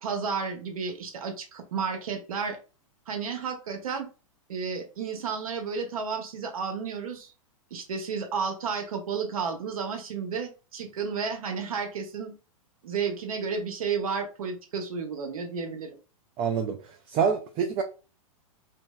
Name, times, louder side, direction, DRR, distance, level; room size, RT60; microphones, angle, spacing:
voice 1, 0.0-2.6 3.1-4.1 4.5-7.3 7.7-12.3 12.8-15.9, right 5 dB, 80° right, 0.9 m, -32 dB
voice 2, 16.4-16.8 17.1-17.8, right 6 dB, 30° right, 0.4 m, -26 dB
3.0 x 2.5 x 2.2 m
hypercardioid pair, 115°, 18 cm